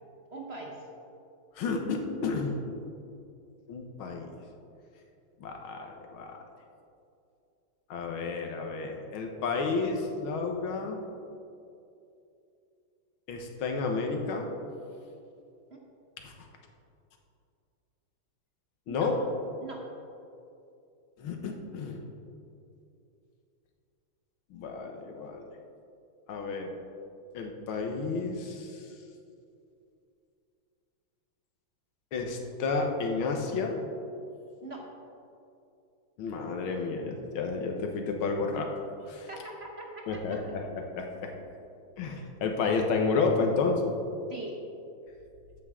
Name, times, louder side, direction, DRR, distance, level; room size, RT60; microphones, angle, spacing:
voice 1, 0.3-0.9 15.7-15.8 18.9-19.1 19.6-19.9 34.6-34.9 39.3-40.4 44.3-44.6, right 2 dB, 40° right, -1 dB, 1.0 m, -42 dB
voice 2, 1.6-2.5 3.7-4.3 5.4-6.4 7.9-11.0 13.3-14.5 16.2-16.5 18.9-19.1 21.2-22.0 24.5-25.4 26.3-26.7 27.3-28.9 32.1-33.8 36.2-38.8 39.0-39.3 40.1-40.6 40.9-41.3 42.0-44.0, left 4 dB, 85° left, 3 dB, 1.9 m, -31 dB
13.5 x 8.4 x 3.7 m, 2.6 s
omnidirectional pair, 2.2 m